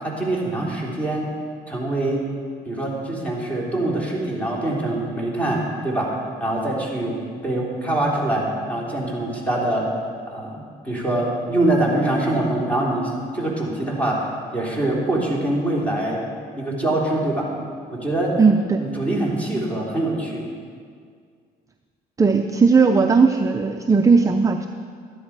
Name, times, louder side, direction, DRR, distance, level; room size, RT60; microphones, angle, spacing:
voice 1, 0.0-1.3 1.7-2.2 2.6-6.1 6.4-7.1 7.4-9.9 10.3-14.2 14.5-16.2 16.6-17.5 17.9-18.3 18.8-20.5, right 1 dB, 10° left, -4 dB, 3.2 m, -24 dB
voice 2, 18.4-18.8 22.2-24.7, right 4 dB, 20° right, 6 dB, 0.5 m, -17 dB
13.0 x 10.5 x 4.8 m, 2.1 s
cardioid pair, 110°, 17 cm